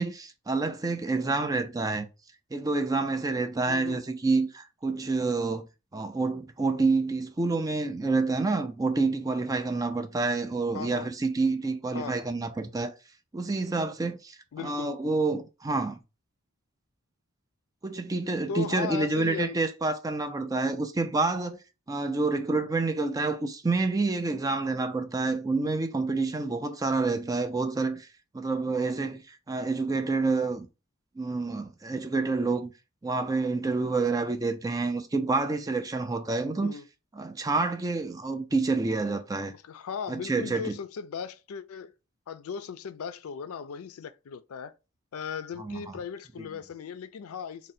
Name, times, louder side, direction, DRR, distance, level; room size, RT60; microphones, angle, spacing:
voice 1, 0.0-2.1 2.5-5.7 5.9-12.9 13.3-16.0 17.8-21.6 21.9-28.1 28.3-30.7 31.2-32.7 33.0-36.8 37.2-39.5 40.1-40.8 45.6-45.8 46.4-46.5, right 3 dB, 15° right, 0.3 m, -28 dB
voice 2, 3.7-4.0 10.7-11.1 11.9-12.2 14.5-15.0 18.5-19.6 36.6-36.9 39.5-41.9 42.3-44.7 45.1-47.7, left 6 dB, 85° left, 0.4 m, -37 dB
3.7 x 2.1 x 4.1 m
head